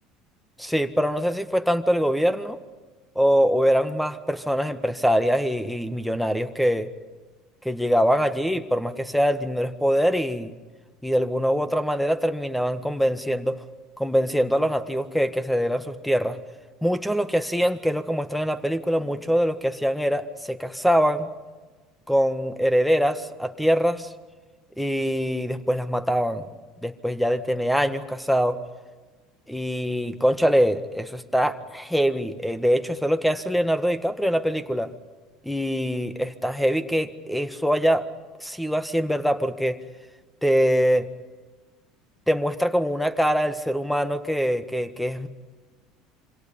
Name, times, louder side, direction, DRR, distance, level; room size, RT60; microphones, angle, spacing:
voice 1, 0.6-2.6 3.1-6.9 7.6-10.5 11.0-13.6 14.0-16.4 16.8-21.3 22.1-24.1 24.8-26.5 26.8-28.6 29.5-34.9 35.4-38.0 38.4-39.8 40.4-41.1 42.3-45.3, equal, ahead, 12 dB, 1.6 m, -23 dB
27.0 x 25.5 x 5.4 m, 1.3 s
figure-of-eight pair, 70°, 0 cm